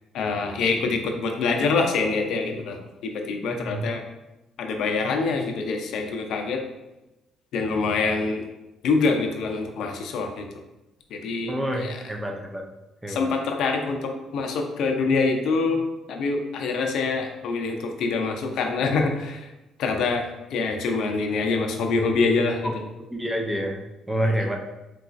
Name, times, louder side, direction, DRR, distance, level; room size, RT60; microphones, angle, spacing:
voice 1, 0.1-4.0 4.6-6.6 7.5-8.4 8.8-10.5 11.1-12.0 13.1-19.5 19.8-22.6 24.2-24.4, left 4 dB, 70° left, 3 dB, 0.4 m, -25 dB
voice 2, 3.5-3.8 11.5-12.6 13.0-13.3 22.6-22.7 23.1-24.6, right 1 dB, 10° right, 2 dB, 0.4 m, -28 dB
3.9 x 2.3 x 2.4 m, 0.99 s
cardioid pair, 110°, 0 cm